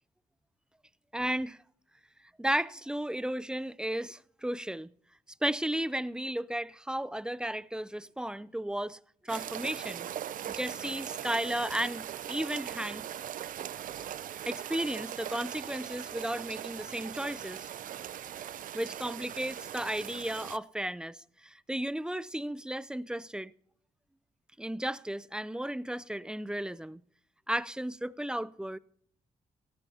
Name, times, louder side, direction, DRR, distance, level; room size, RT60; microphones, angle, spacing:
voice 1, 1.1-1.6 2.4-4.9 5.4-10.1 10.5-13.1 14.5-17.7 18.7-23.5 24.6-27.0 27.5-28.8, right 1 dB, 5° right, 0.5 m, -34 dB
sound 1, 9.3-20.6, right 10 dB, 65° right, 0.5 m, -40 dB
17.5 x 14.0 x 2.8 m
cardioid pair, 60°, 15 cm